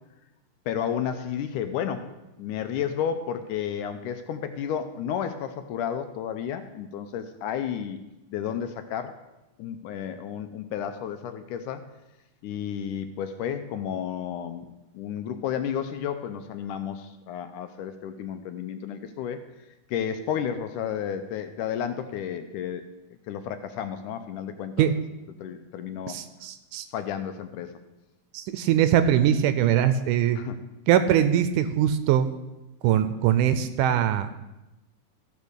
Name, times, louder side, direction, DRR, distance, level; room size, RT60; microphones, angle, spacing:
voice 1, 0.7-2.1 2.4-8.0 8.3-9.2 9.6-11.9 12.4-14.7 14.9-19.4 19.9-22.8 23.3-24.9 25.4-26.2 26.9-27.7 30.3-30.6, left 8 dB, 80° left, 9 dB, 2.0 m, -32 dB
voice 2, 26.1-26.9 28.3-30.4 30.9-32.3 32.8-34.3, right 10 dB, 80° right, 10 dB, 2.0 m, -22 dB
14.5 x 5.3 x 6.4 m, 0.98 s
omnidirectional pair, 3.9 m